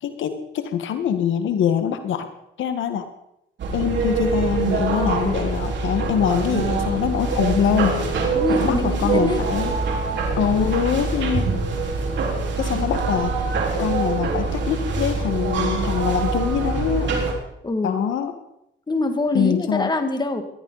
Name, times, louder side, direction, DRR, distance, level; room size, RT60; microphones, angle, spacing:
voice 1, 0.0-2.3 2.6-3.1 3.7-8.0 8.6-9.7 10.4-11.5 12.6-13.4 13.8-17.1 17.8-18.3 19.3-19.9, left 8 dB, 75° left, 8 dB, 1.5 m, -23 dB
sound 1, 3.6-17.3, right 4 dB, 65° right, 4.2 m, -24 dB
voice 2, 8.4-9.4 17.6-18.0 18.9-20.4, left 2 dB, 20° left, 6 dB, 2.1 m, -24 dB
19.0 x 13.5 x 4.1 m, 0.82 s
cardioid pair, 90°, 20 cm